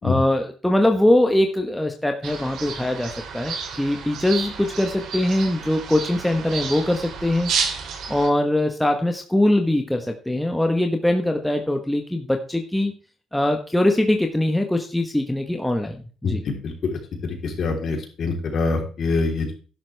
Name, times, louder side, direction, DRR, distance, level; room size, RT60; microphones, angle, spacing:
voice 1, 0.0-7.5 8.1-12.9 13.3-16.4, left 1 dB, 5° left, 3 dB, 1.1 m, -22 dB
sound 1, 2.2-8.3, right 6 dB, 70° right, 3.0 m, -31 dB
voice 2, 16.2-19.5, left 3 dB, 55° left, 2 dB, 3.5 m, -25 dB
11.5 x 11.0 x 3.4 m, 0.38 s
cardioid pair, 105°, 0 cm